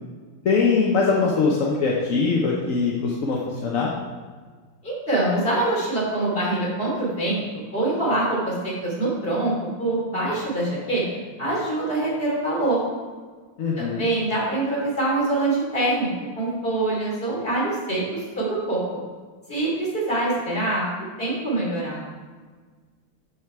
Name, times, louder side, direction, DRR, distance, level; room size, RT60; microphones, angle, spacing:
voice 1, 0.4-3.9 13.6-14.1, left 4 dB, 50° left, -3 dB, 1.1 m, -22 dB
voice 2, 4.8-11.0 11.4-12.8 13.8-16.1 16.4-18.8 19.5-20.8 21.2-22.1, right 2 dB, 25° left, -5 dB, 3.3 m, -24 dB
12.5 x 5.1 x 4.6 m, 1.5 s
omnidirectional pair, 2.3 m